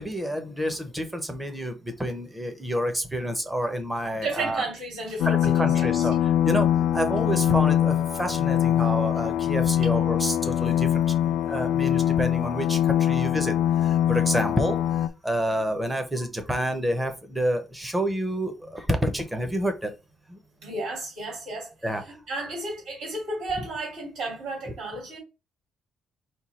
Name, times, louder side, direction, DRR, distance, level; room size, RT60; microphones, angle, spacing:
voice 1, 0.0-4.6 5.2-19.9 20.3-20.4 21.8-22.2, equal, 10° right, 0.8 m, -29 dB
voice 2, 4.2-5.9 20.6-21.7 22.0-25.2, right 2 dB, 65° right, 2.6 m, -33 dB
sound 1, 5.2-15.1, left 11 dB, 85° left, 0.3 m, -23 dB
4.4 x 2.3 x 4.2 m
cardioid pair, 140°, 0 cm